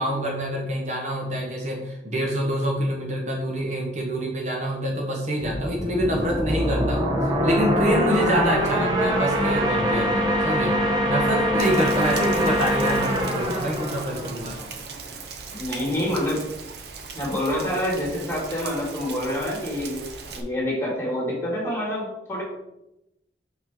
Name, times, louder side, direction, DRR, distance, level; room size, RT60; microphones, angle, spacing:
voice 1, 0.0-7.1 7.4-10.7 11.1-14.6, equal, 40° right, 0 dB, 1.1 m, -26 dB
sound 1, 5.4-15.0, equal, 25° right, 0.9 m, -24 dB
Rain, 11.6-20.4, right 5 dB, 70° right, 0.8 m, -39 dB
voice 2, 15.5-16.4 17.1-20.0 20.3-22.4, left 1 dB, 15° left, -3 dB, 2.3 m, -27 dB
5.8 x 5.7 x 3.8 m, 0.89 s
head